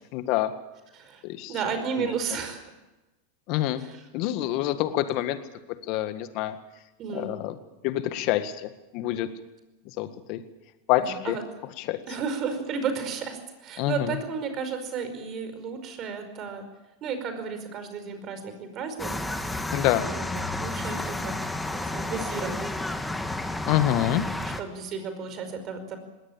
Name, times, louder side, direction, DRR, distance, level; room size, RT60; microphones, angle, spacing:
voice 1, 0.1-0.5 1.2-1.5 2.0-2.1 3.5-3.8 4.1-5.4 5.9-6.6 7.1-7.6 7.8-9.3 10.0-10.4 10.9-11.4 11.8-12.0 13.8-14.2 19.7-20.1 23.7-24.2, left 13 dB, 55° left, 11 dB, 1.8 m, -26 dB
voice 2, 1.5-2.6 3.8-4.0 7.0-7.3 11.0-11.4 12.1-16.6 17.0-19.6 20.0-21.5 21.8-22.8 24.4-26.0, right 6 dB, 40° right, 8 dB, 5.1 m, -33 dB
sound 1, 19.0-24.6, left 2 dB, 5° left, 2.1 m, -31 dB
20.5 x 18.0 x 8.8 m, 1.0 s
hypercardioid pair, 95°, 0 cm